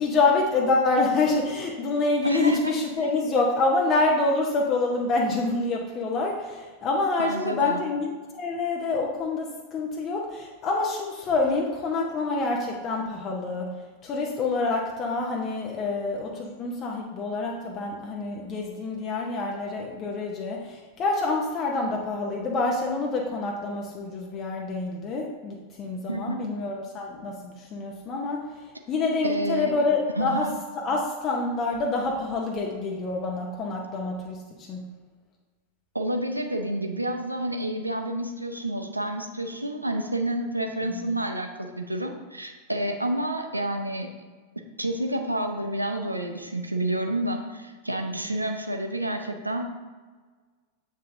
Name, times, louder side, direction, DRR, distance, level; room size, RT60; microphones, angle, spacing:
voice 1, 0.0-13.7 14.0-30.5 30.8-34.8 40.9-41.1, left 3 dB, 30° left, -1 dB, 0.8 m, -27 dB
voice 2, 2.2-2.7 7.2-7.8 26.1-26.5 29.2-29.7 30.2-30.6 35.9-44.1 44.8-49.6, right 1 dB, 85° right, 5 dB, 0.6 m, -29 dB
7.6 x 5.4 x 2.6 m, 1.4 s
figure-of-eight pair, 90°, 0 cm